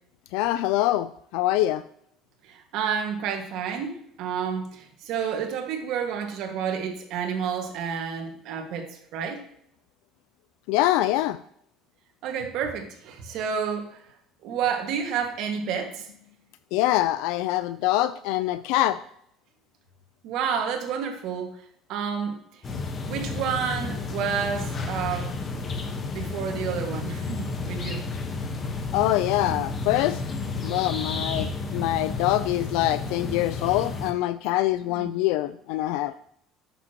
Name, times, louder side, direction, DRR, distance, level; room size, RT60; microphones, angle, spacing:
voice 1, 0.3-1.1 1.3-1.8 10.7-11.4 16.7-19.0 28.9-30.2 30.6-31.5 31.7-36.1, left 15 dB, 80° left, 13 dB, 0.3 m, -24 dB
voice 2, 2.5-9.4 12.2-14.0 14.4-16.0 20.2-21.6 21.9-22.4 23.0-25.3 26.1-28.0 34.8-35.1, right 7 dB, 65° right, 4 dB, 1.6 m, -30 dB
sound 1, 22.6-34.1, left 3 dB, 30° left, 1.1 m, -31 dB
9.3 x 7.1 x 2.9 m, 0.69 s
cardioid pair, 140°, 0 cm